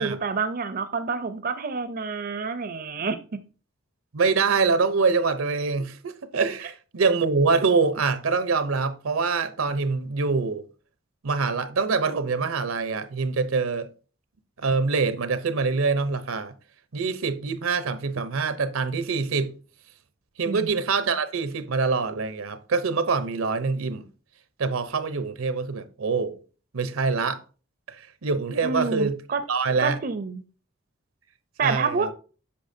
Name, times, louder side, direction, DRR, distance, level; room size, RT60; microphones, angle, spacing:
voice 1, 0.0-3.4 20.5-20.7 28.6-29.4 29.8-30.4 31.6-32.1, right 4 dB, 45° right, 0.5 m, -28 dB
voice 2, 4.1-10.7 11.2-13.9 14.6-16.5 16.9-19.5 20.4-24.1 24.6-26.4 26.7-27.4 27.9-29.2 29.5-30.0 31.6-32.1, right 4 dB, 80° right, 0.7 m, -25 dB
8.5 x 6.0 x 2.7 m
head